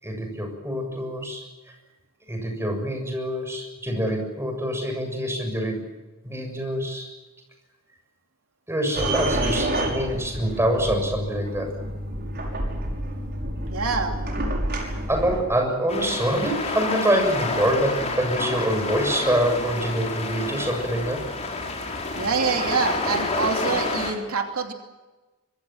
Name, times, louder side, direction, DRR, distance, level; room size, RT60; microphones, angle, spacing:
voice 1, 0.0-1.4 2.3-5.9 6.2-7.1 8.7-11.7 14.8-21.3, right 1 dB, 10° right, 3 dB, 7.1 m, -25 dB
sound 1, 9.0-15.4, right 1 dB, 50° right, 6.2 m, -28 dB
voice 2, 13.7-14.2 21.9-24.7, right 5 dB, 85° right, 3 dB, 2.9 m, -26 dB
sound 2, 15.9-24.1, left 3 dB, 30° left, 5.1 m, -29 dB
26.0 x 23.0 x 7.4 m, 1.2 s
head